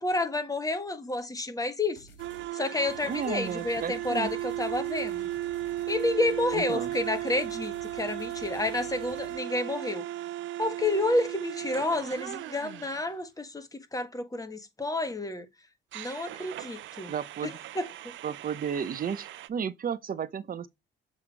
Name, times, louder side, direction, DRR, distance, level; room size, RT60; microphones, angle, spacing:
voice 1, 0.0-2.1 2.5-5.3 5.9-10.1 10.6-15.5 15.9-17.1 17.4-17.9, left 2 dB, 15° left, 1.5 m, -30 dB
sound 1, 2.0-2.5 2.9-9.3, right 1 dB, 65° left, 4.1 m, -52 dB
sound 2, 2.2-13.1 15.9-19.5, right 14 dB, 75° right, 0.5 m, -36 dB
voice 2, 3.0-4.3 6.5-6.9 17.1-17.6 18.2-20.7, right 7 dB, 45° right, 0.9 m, -33 dB
7.6 x 3.6 x 4.6 m
cardioid pair, 90°, 20 cm